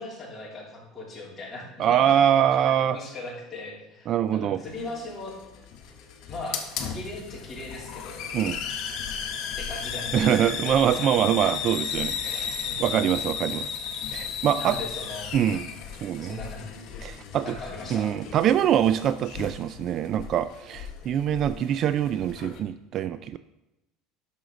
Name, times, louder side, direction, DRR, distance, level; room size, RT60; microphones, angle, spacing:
voice 1, 0.0-2.2 2.6-5.4 6.3-6.6 6.9-8.2 9.6-11.1 11.4-11.7 12.6-13.0 14.5-15.7 16.2-16.7 17.4-18.1, left 2 dB, 15° left, -5 dB, 3.3 m, -39 dB
voice 2, 1.8-3.0 4.1-4.6 8.3-8.6 10.1-13.7 14.1-14.8 15.3-15.7 16.0-16.4 17.0-17.5 17.9-23.4, right 10 dB, 45° right, 14 dB, 0.3 m, -24 dB
Hiss, 4.7-22.6, left 7 dB, 55° left, 1.3 m, -35 dB
11.0 x 6.4 x 3.9 m, 0.93 s
supercardioid pair, 130°, 0 cm